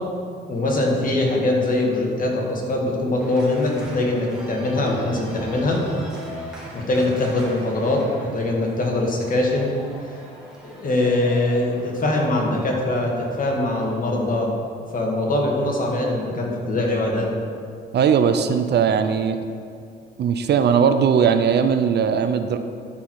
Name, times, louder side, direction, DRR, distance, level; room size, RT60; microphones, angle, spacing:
voice 1, 0.5-5.8 6.7-9.7 10.0-10.1 10.6-14.5 14.9-17.3, left 2 dB, 45° left, -1 dB, 1.9 m, -22 dB
Organ, 3.2-13.9, equal, 5° right, 2.1 m, -40 dB
voice 2, 17.9-19.4 20.2-22.6, right 7 dB, 55° right, 8 dB, 0.6 m, -19 dB
12.0 x 4.6 x 4.7 m, 2.3 s
cardioid pair, 90°, 20 cm